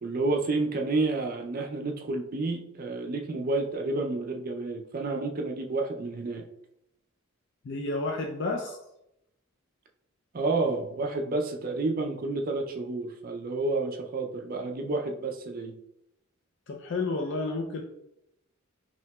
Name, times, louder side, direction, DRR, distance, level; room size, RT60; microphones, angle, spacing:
voice 1, 0.0-6.4 10.3-15.7, right 3 dB, 45° right, 3 dB, 0.4 m, -30 dB
voice 2, 7.6-8.8 16.7-17.8, left 3 dB, 60° left, 1 dB, 0.4 m, -31 dB
5.7 x 2.8 x 2.3 m, 0.81 s
head